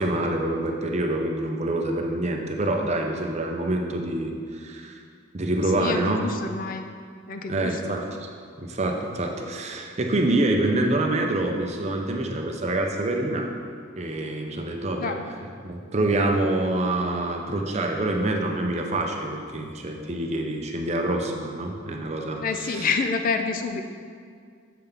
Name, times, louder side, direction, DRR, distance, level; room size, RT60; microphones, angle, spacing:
voice 1, 0.0-5.0 5.3-6.3 7.5-8.3 8.6-13.5 14.0-15.1 15.6-22.9, right 2 dB, 35° right, 2 dB, 0.7 m, -26 dB
voice 2, 5.8-6.8 7.3-8.0 15.0-15.3 22.4-23.8, left 4 dB, 45° left, 6 dB, 0.4 m, -28 dB
7.6 x 6.7 x 3.6 m, 2.1 s
head